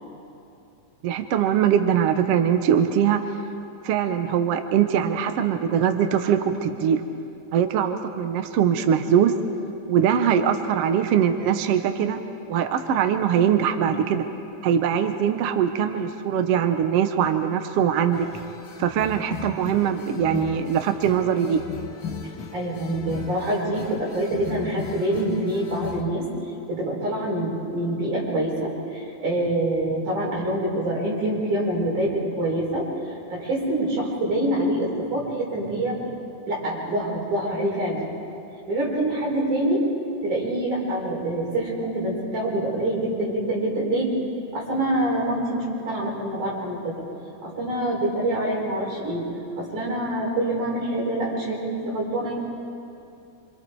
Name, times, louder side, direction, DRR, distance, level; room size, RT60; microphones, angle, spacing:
voice 1, 1.0-3.2 3.8-7.0 7.5-9.3 9.9-12.2 12.5-14.2 14.6-18.3 18.8-21.6, right 8 dB, 65° right, 7 dB, 1.6 m, -22 dB
sound 1, 18.1-26.0, left 5 dB, 55° left, 1.5 m, -37 dB
voice 2, 22.5-26.3 26.7-36.0 36.5-38.0 38.7-39.8 40.2-44.1 44.5-47.0 47.4-49.3 49.6-52.3, right 1 dB, 80° right, -4 dB, 6.3 m, -26 dB
26.5 x 26.0 x 4.7 m, 2.7 s
omnidirectional pair, 3.5 m